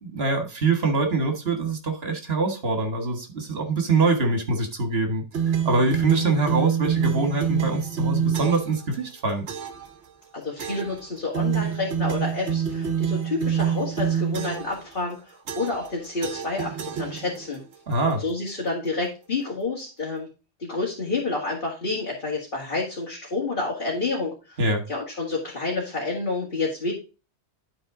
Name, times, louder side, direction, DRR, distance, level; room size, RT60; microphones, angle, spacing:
voice 1, 0.0-5.2 5.7-9.5 17.9-18.2 24.6-24.8, right 3 dB, 65° right, 5 dB, 1.9 m, -24 dB
sound 1, 5.3-8.8 9.5-9.9 10.6-11.0 11.3-14.8 15.5-15.9 16.2-17.6, right 8 dB, 80° right, 1.2 m, -26 dB
voice 2, 10.3-16.7 17.0-17.6 18.2-20.3 20.6-24.6 24.9-26.9, left 3 dB, 50° left, -4 dB, 2.2 m, -29 dB
11.5 x 4.3 x 3.7 m, 0.31 s
omnidirectional pair, 1.1 m